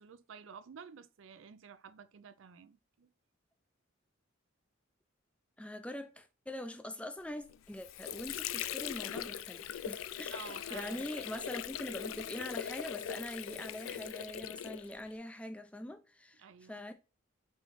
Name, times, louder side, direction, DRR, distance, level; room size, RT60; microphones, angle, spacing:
voice 1, 0.0-3.1 10.3-11.1 16.4-16.8, right 6 dB, 75° right, 0.4 m, -51 dB
voice 2, 5.6-16.9, left 1 dB, 5° left, 0.4 m, -43 dB
Water / Sink (filling or washing), 7.5-15.2, left 10 dB, 85° left, 0.3 m, -41 dB
5.5 x 3.1 x 3.0 m
head